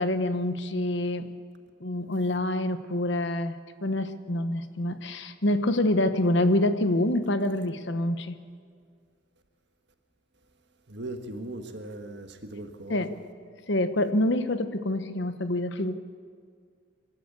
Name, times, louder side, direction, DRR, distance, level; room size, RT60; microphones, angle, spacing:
voice 1, 0.0-1.3 1.8-8.4 12.9-13.1 13.7-16.0, left 1 dB, 60° left, 1.1 m, -26 dB
voice 2, 10.9-13.1, right 1 dB, 55° right, 1.7 m, -39 dB
26.0 x 13.0 x 8.5 m
head